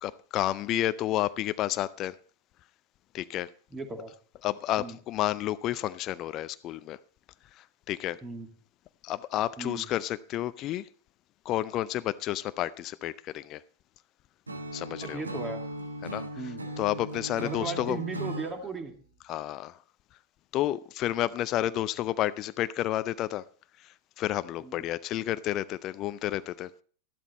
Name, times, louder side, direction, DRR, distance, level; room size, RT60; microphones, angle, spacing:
voice 1, 0.0-2.1 3.1-3.5 4.4-7.0 7.5-8.2 9.0-10.9 11.5-13.6 14.7-15.2 16.0-16.3 16.8-18.0 19.3-19.8 20.5-23.4 23.8-26.7, left 13 dB, 35° left, 0.5 m, -31 dB
voice 2, 3.7-4.1 4.8-5.0 8.2-8.5 9.6-9.9 15.0-15.6 16.4-16.6 17.4-18.9 24.6-24.9, right 4 dB, 20° right, 2.3 m, -37 dB
Acoustic guitar / Strum, 14.5-18.6, right 1 dB, 80° right, 1.6 m, -37 dB
13.5 x 12.0 x 4.2 m
figure-of-eight pair, 90°, 0 cm